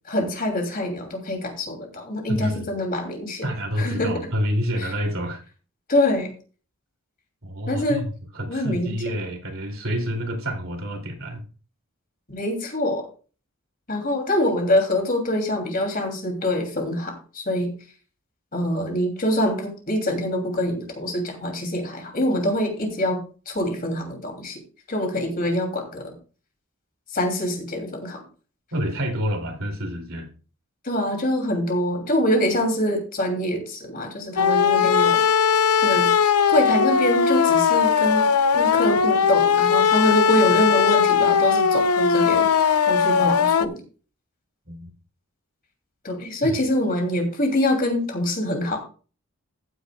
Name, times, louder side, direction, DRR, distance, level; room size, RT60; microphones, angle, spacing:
voice 1, 0.1-3.5 3.8-4.2 4.8-4.9 5.9-6.3 7.7-8.0 8.5-8.9 12.3-13.1 13.9-17.7 18.5-23.2 23.5-24.6 24.9-26.1 27.1-28.2 30.8-35.2 35.8-36.1 36.5-38.2 38.5-43.7 46.0-48.8, left 1 dB, 40° left, 3 dB, 2.9 m, -25 dB
voice 2, 2.3-2.7 3.4-5.4 7.4-8.0 8.3-11.4 28.7-30.3 44.7-44.9 46.4-46.6, equal, 65° right, 2 dB, 2.9 m, -28 dB
sound 1, 34.4-43.7, left 6 dB, 90° left, 0.7 m, -19 dB
14.5 x 9.5 x 2.3 m, 0.37 s
head